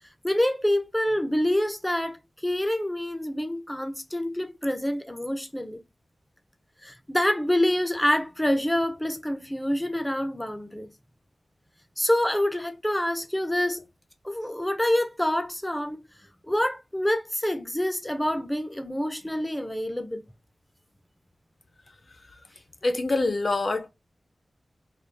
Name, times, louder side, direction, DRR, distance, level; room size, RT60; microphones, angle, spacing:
voice 1, 0.2-5.8 6.8-10.9 12.0-13.8 14.2-16.0 16.5-20.2, left 1 dB, 10° left, 0.6 m, -26 dB
voice 2, 22.8-23.9, left 2 dB, 45° left, 0.7 m, -25 dB
3.9 x 2.5 x 3.3 m
wide cardioid pair, 95°, 0 cm